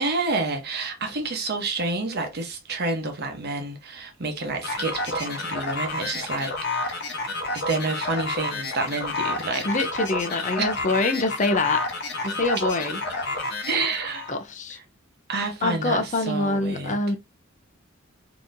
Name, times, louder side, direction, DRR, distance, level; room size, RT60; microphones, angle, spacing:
voice 1, 0.0-7.0 7.5-9.7 10.6-10.7 13.7-14.3 15.3-17.0, right 3 dB, 50° right, 0.9 m, -29 dB
sound 1, 4.6-14.4, left 2 dB, 55° left, 0.9 m, -30 dB
voice 2, 9.6-11.9 12.2-13.0 14.3-14.8 15.6-17.2, left 2 dB, 35° left, 0.6 m, -25 dB
4.0 x 2.9 x 2.6 m
head